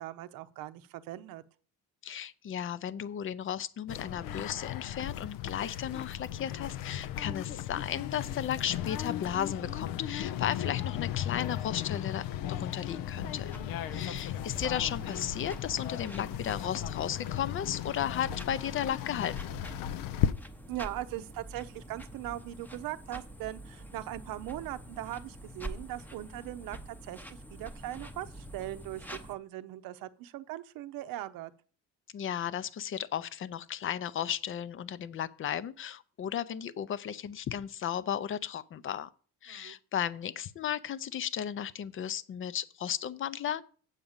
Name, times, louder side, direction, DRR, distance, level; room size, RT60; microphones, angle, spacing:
voice 1, 0.0-1.4 13.8-14.2 20.7-31.5 39.5-39.8, right 14 dB, 85° right, 0.7 m, -40 dB
voice 2, 2.0-13.5 13.9-19.6 32.1-39.1 39.4-43.6, left 9 dB, 40° left, 0.5 m, -35 dB
sound 1, 3.9-20.3, left 11 dB, 85° left, 0.6 m, -36 dB
sound 2, 13.0-29.4, right 1 dB, 5° left, 0.7 m, -46 dB
8.1 x 5.0 x 7.2 m
cardioid pair, 140°, 33 cm